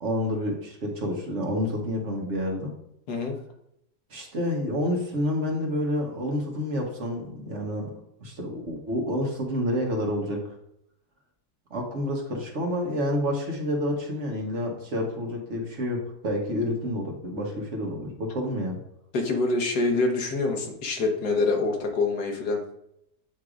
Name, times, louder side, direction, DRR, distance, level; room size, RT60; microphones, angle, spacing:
voice 1, 0.0-2.7 4.1-7.9 8.2-10.4 11.7-18.8, equal, 50° right, 0 dB, 1.4 m, -29 dB
voice 2, 19.1-22.6, left 3 dB, 85° left, 3 dB, 1.6 m, -25 dB
8.1 x 4.7 x 2.5 m, 0.76 s
omnidirectional pair, 1.6 m